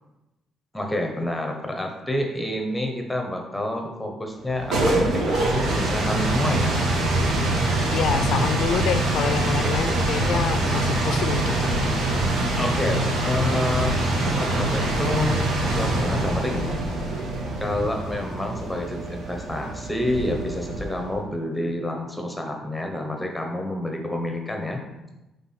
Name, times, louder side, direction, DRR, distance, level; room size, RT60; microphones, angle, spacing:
voice 1, 0.7-6.8 12.6-16.8 17.6-24.8, left 1 dB, 5° left, 2 dB, 0.9 m, -28 dB
sound 1, 4.4-21.1, right 2 dB, 75° right, 1.5 m, -24 dB
voice 2, 7.9-11.7, left 8 dB, 70° left, 11 dB, 0.4 m, -27 dB
5.9 x 3.4 x 5.8 m, 1.0 s
cardioid pair, 90°, 0 cm